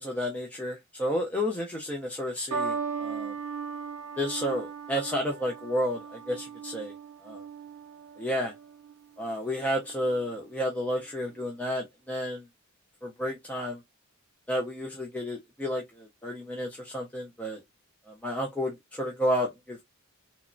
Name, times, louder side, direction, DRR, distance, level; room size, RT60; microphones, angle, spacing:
voice 1, 0.0-3.3 4.2-6.9 7.2-7.4 8.2-8.5 9.2-12.4 13.0-13.8 14.5-17.6 18.1-19.8, equal, 5° left, 0.4 m, -31 dB
sound 1, 2.5-9.0 9.9-10.3, right 5 dB, 75° right, 0.5 m, -37 dB
2.9 x 2.1 x 2.4 m
head